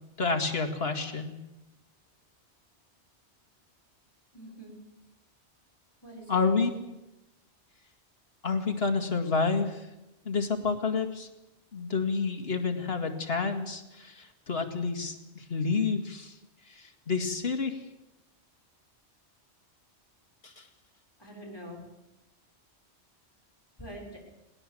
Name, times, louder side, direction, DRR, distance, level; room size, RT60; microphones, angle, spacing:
voice 1, 0.2-1.3 6.3-6.7 8.4-9.9 10.3-11.3 11.7-16.3 16.7-17.8 20.4-20.6, left 4 dB, 60° left, 5 dB, 2.4 m, -29 dB
voice 2, 4.3-4.8 6.0-6.8 21.2-21.8 23.8-24.0, right 1 dB, 20° left, -2 dB, 6.0 m, -44 dB
20.0 x 18.5 x 7.8 m, 0.95 s
omnidirectional pair, 1.2 m